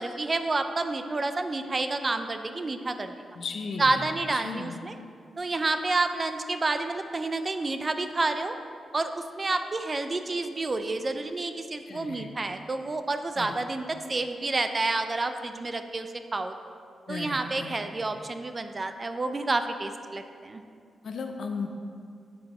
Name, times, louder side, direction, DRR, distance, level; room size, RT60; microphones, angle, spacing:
voice 1, 0.0-3.2 3.8-5.0 5.4-8.6 8.9-16.5 17.1-20.6, right 2 dB, 30° right, 8 dB, 0.5 m, -29 dB
voice 2, 3.3-4.0 4.3-4.8 11.9-12.3 13.4-13.5 17.1-17.8 21.0-21.7, left 4 dB, 65° left, 5 dB, 0.8 m, -35 dB
8.5 x 7.5 x 4.2 m, 2.3 s
wide cardioid pair, 125°, 0 cm